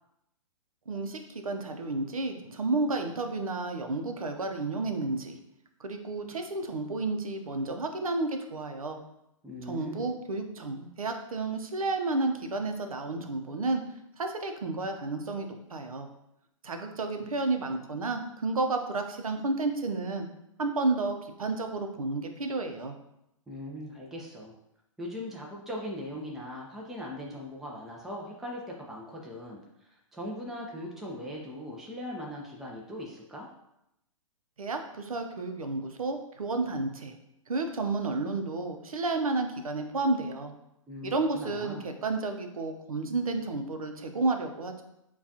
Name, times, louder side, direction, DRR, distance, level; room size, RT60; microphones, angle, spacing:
voice 1, 0.9-5.4 5.8-9.0 9.6-13.8 14.2-16.1 16.6-20.3 20.6-23.0 34.6-37.1 37.5-40.5 41.0-44.8, right 3 dB, 85° right, 6 dB, 0.6 m, -31 dB
voice 2, 9.4-10.1 23.5-24.5 25.0-33.5 40.9-41.8, left 1 dB, ahead, -3 dB, 0.5 m, -40 dB
6.9 x 2.3 x 2.7 m, 0.83 s
hypercardioid pair, 125°, 18 cm